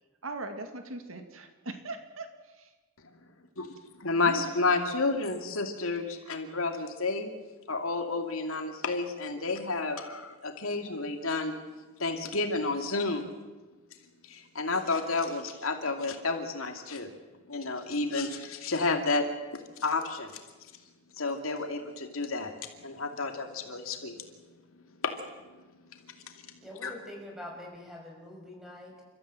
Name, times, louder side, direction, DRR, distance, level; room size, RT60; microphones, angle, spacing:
voice 1, 0.2-2.3 4.2-4.5, right 2 dB, 70° right, 7 dB, 2.3 m, -39 dB
voice 2, 3.6-7.3 7.7-11.6 12.0-13.3 14.2-17.1 17.5-19.3 19.5-20.4 21.2-22.5 22.8-24.2 25.0-25.1 25.5-25.6 26.2-26.6 26.8-26.9, left 3 dB, 80° left, 5 dB, 2.6 m, -31 dB
voice 3, 26.6-29.0, left 1 dB, ahead, 0 dB, 6.0 m, -44 dB
29.5 x 14.0 x 7.7 m, 1.2 s
head